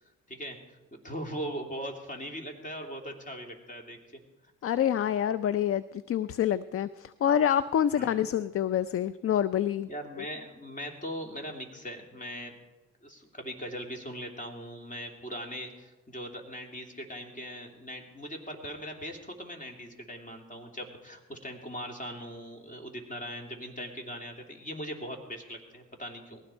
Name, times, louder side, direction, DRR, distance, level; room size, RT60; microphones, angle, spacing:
voice 1, 0.9-4.0 7.9-8.2 9.9-12.6 13.0-26.4, equal, 25° left, 3 dB, 2.9 m, -40 dB
voice 2, 4.6-9.9 10.2-10.3, left 9 dB, 50° left, 15 dB, 0.5 m, -27 dB
19.5 x 16.0 x 4.5 m, 1.1 s
cardioid pair, 90°, 30 cm